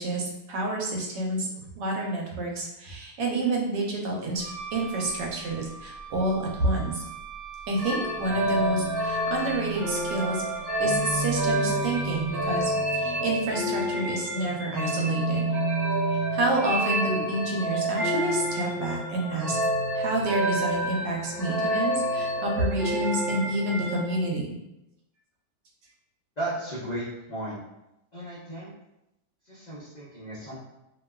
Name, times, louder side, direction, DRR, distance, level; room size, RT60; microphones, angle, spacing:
voice 1, 0.0-1.5 1.8-4.4 4.7-7.0 7.7-10.4 10.8-15.5 16.3-19.6 19.9-24.5, right 2 dB, 85° right, -1 dB, 1.3 m, -29 dB
Wind instrument woodwind instrument, 4.4-12.7, right 7 dB, 70° right, 0.8 m, -42 dB
sound 1, 7.8-24.2, right 1 dB, 15° right, 0.9 m, -28 dB
voice 2, 26.4-27.6 28.1-28.7 29.4-30.5, right 1 dB, 85° left, -10 dB, 0.3 m, -35 dB
2.9 x 2.2 x 2.2 m, 0.88 s
omnidirectional pair, 1.8 m